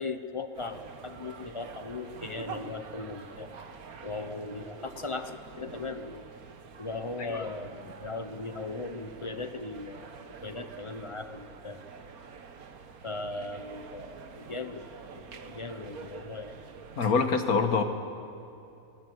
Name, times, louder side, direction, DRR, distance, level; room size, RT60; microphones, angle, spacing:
voice 1, 0.0-3.5 4.0-6.3 6.8-10.1 10.4-11.8 13.0-14.9 15.1-16.6, left 3 dB, 25° left, 9 dB, 0.8 m, -38 dB
sound 1, 0.5-17.1, right 5 dB, 75° right, 1.7 m, -47 dB
voice 2, 17.0-17.8, left 5 dB, 75° left, 7 dB, 1.9 m, -25 dB
23.5 x 19.0 x 7.9 m, 2.7 s
omnidirectional pair, 1.6 m